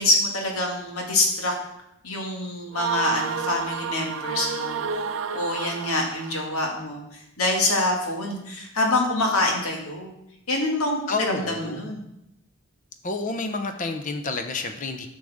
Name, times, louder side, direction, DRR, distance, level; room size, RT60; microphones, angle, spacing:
voice 1, 0.0-1.5 2.0-4.8 5.3-10.1 10.5-12.0, left 2 dB, 85° left, 0 dB, 1.9 m, -25 dB
sound 1, 2.7-6.5, right 6 dB, 65° right, 0.4 m, -30 dB
voice 2, 11.1-11.9 13.0-15.1, left 3 dB, 35° left, 7 dB, 0.7 m, -29 dB
10.0 x 6.4 x 3.6 m, 0.80 s
head